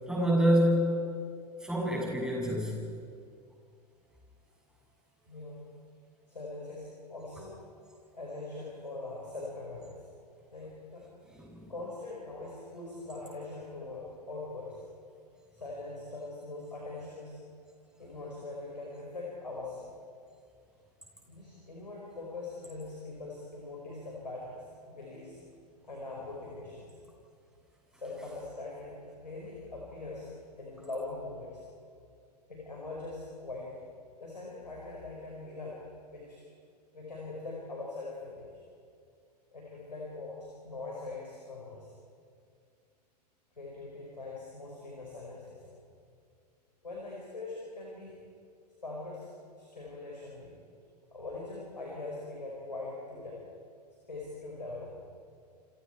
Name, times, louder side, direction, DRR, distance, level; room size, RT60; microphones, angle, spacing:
voice 1, 0.1-1.0 1.6-2.8 11.3-11.7, equal, 5° right, -2 dB, 7.4 m, -27 dB
voice 2, 5.3-5.7 6.3-7.6 8.1-10.1 10.5-11.1 11.7-14.8 15.5-17.4 18.0-19.9 21.3-25.4 25.8-26.9 27.9-30.3 30.6-31.6 32.5-33.8 34.2-35.8 36.1-36.4 36.9-38.5 39.5-41.9 43.6-45.7 46.8-48.2 48.8-49.3 49.6-50.5 51.1-53.4 54.1-55.0, left 2 dB, 80° left, -3 dB, 5.1 m, -42 dB
29.5 x 26.5 x 4.6 m, 2.3 s
figure-of-eight pair, 90°, 21 cm